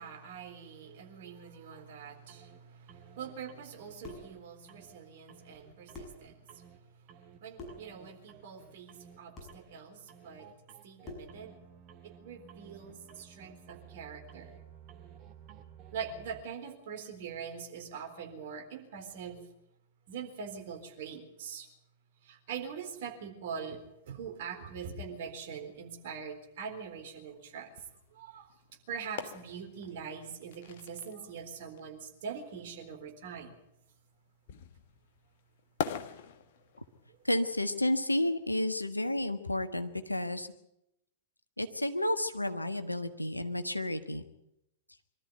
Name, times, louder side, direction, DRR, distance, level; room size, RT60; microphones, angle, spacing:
voice 1, 0.0-6.6 7.4-10.5 10.8-11.6 12.0-14.6 15.9-19.5 20.1-21.7 22.2-27.7 28.1-28.5 28.9-33.6, right 6 dB, 50° right, 4 dB, 3.9 m, -43 dB
sound 1, 2.3-2.6 2.9-4.4 4.7-5.0 5.3-6.8 7.1-7.4 7.7-9.2 9.5-9.8 10.1-16.4, right 8 dB, 35° right, 2.0 m, -54 dB
sound 2, 4.0-4.4 5.5-5.6 5.9-6.3 7.5-7.9 9.3-9.6 11.0-11.4, left 2 dB, 20° left, 7.1 m, -46 dB
sound 3, 23.7-37.5, left 8 dB, 55° left, 1.6 m, -46 dB
voice 2, 37.2-40.5 41.6-44.2, left 1 dB, 90° left, 9 dB, 1.4 m, -31 dB
24.0 x 13.5 x 9.3 m, 0.83 s
figure-of-eight pair, 100°, 0 cm